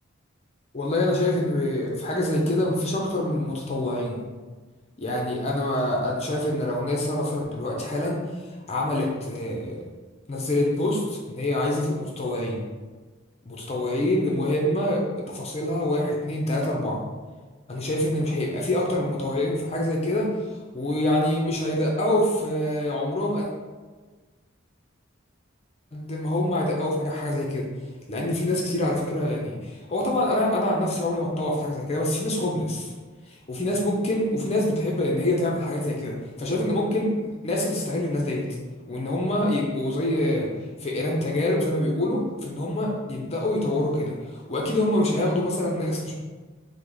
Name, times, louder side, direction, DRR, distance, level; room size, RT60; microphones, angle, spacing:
voice 1, 0.7-4.2 5.0-8.2 8.7-9.8 10.3-12.7 13.5-17.0 17.7-20.3 20.7-23.5 25.9-27.7 28.1-32.9 33.3-38.5 38.9-40.5 40.8-46.1, left 1 dB, 30° left, -2 dB, 0.6 m, -25 dB
5.6 x 2.1 x 3.9 m, 1.3 s
head